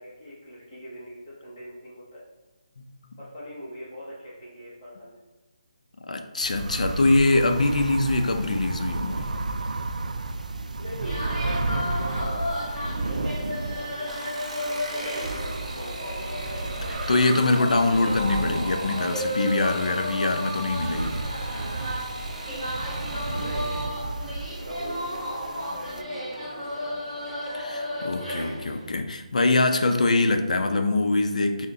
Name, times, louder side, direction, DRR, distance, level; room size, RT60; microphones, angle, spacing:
voice 1, 0.0-2.2 3.2-5.2 10.8-12.4 13.1-16.3 23.3-24.1 24.5-26.8, equal, 15° left, -13 dB, 0.6 m, -42 dB
voice 2, 6.1-9.3 16.9-21.2 27.5-31.7, left 2 dB, 70° left, 6 dB, 0.5 m, -23 dB
sound 1, 6.4-26.0, right 2 dB, 90° right, 0.3 m, -33 dB
sound 2, 11.0-28.9, equal, 10° right, 1.1 m, -33 dB
sound 3, 14.1-23.9 25.1-25.6 26.0-26.5 26.7-26.8, right 2 dB, 70° right, 0.8 m, -41 dB
6.1 x 2.1 x 2.7 m, 1.1 s
hypercardioid pair, 175°, 4 cm